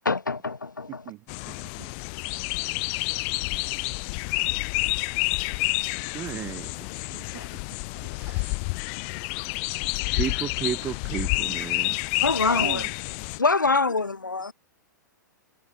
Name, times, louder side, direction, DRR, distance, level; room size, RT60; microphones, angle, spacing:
voice 1, 0.0-1.0 7.4-7.5 8.0-8.4 12.2-12.9 13.4-14.5, left 3 dB, 80° left, 2.4 m, -25 dB
voice 2, 0.9-1.9 7.1-7.6 12.4-12.9, right 20 dB, 35° right, 6.7 m, -40 dB
sound 1, 1.3-13.4, left 35 dB, 40° left, 1.2 m, -29 dB
voice 3, 6.1-6.8 8.2-8.6 10.1-12.0, right 9 dB, 15° right, 0.4 m, -33 dB
figure-of-eight pair, 105°, 10 cm